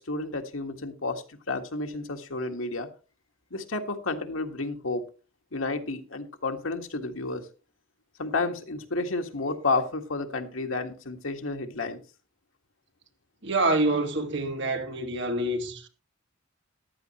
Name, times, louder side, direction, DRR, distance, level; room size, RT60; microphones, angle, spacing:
voice 1, 0.0-2.9 3.5-5.0 5.5-7.4 8.2-12.0, left 3 dB, 85° left, 1.7 m, -31 dB
voice 2, 13.4-15.9, right 2 dB, 60° right, 2.0 m, -26 dB
14.5 x 11.0 x 3.1 m
head